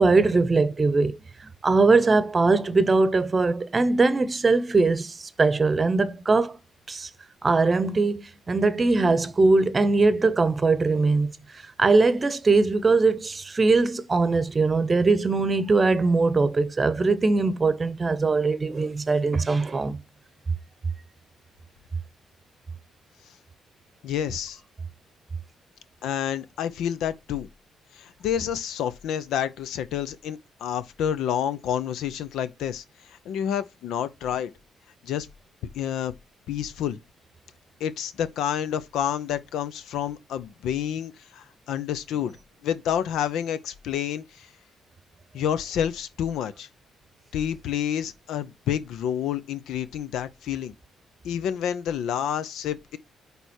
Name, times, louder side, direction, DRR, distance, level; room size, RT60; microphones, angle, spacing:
voice 1, 0.0-6.6 6.9-7.1 7.4-11.3 11.8-20.0, right 3 dB, 30° right, 0.8 m, -21 dB
voice 2, 24.0-24.6 26.0-27.5 27.9-32.8 33.1-34.5 35.0-35.3 35.7-36.1 36.5-37.0 37.8-42.3 42.6-44.5 45.3-46.7 47.3-50.7 51.2-53.0, left 9 dB, 80° left, 0.7 m, -29 dB
9.2 x 3.4 x 4.4 m
cardioid pair, 90°, 0 cm